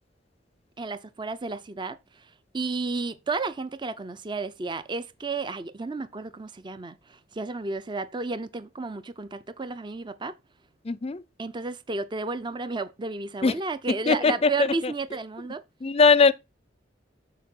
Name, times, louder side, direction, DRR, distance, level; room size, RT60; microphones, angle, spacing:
voice 1, 0.8-10.4 11.4-15.6, right 3 dB, 25° right, 0.5 m, -32 dB
voice 2, 10.8-11.2 13.4-13.5 13.9-14.5 15.8-16.3, left 4 dB, 35° left, 0.5 m, -20 dB
12.5 x 4.6 x 4.4 m
head